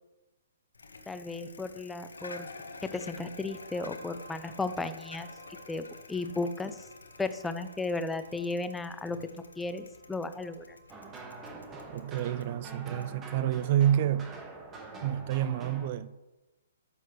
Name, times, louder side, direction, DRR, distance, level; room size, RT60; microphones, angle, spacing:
Bicycle, 0.7-13.9, left 3 dB, 85° left, 1.0 m, -50 dB
voice 1, 1.1-2.5 2.8-5.3 5.7-6.8 7.2-9.2 9.6-10.8, left 3 dB, 5° left, 0.6 m, -34 dB
sound 1, 3.5-13.0, right 3 dB, 90° right, 2.3 m, -58 dB
sound 2, 10.9-15.9, right 3 dB, 20° right, 1.3 m, -45 dB
voice 2, 11.9-14.4 15.0-16.2, right 11 dB, 45° right, 0.3 m, -28 dB
12.5 x 8.1 x 3.2 m
hypercardioid pair, 130°, 0 cm